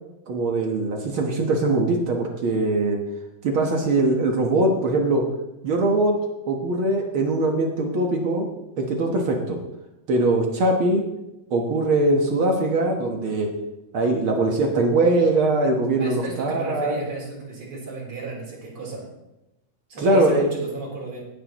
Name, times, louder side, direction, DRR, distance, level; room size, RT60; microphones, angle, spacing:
voice 1, 0.3-3.0 3.4-5.2 5.6-6.1 6.5-8.5 8.8-9.6 10.1-11.0 11.5-13.5 13.9-17.0 20.0-20.5, right 2 dB, 60° right, 1 dB, 1.4 m, -21 dB
voice 2, 16.0-19.1 19.9-21.2, right 2 dB, 40° right, -4 dB, 4.5 m, -33 dB
17.0 x 10.0 x 3.1 m, 0.91 s
omnidirectional pair, 4.0 m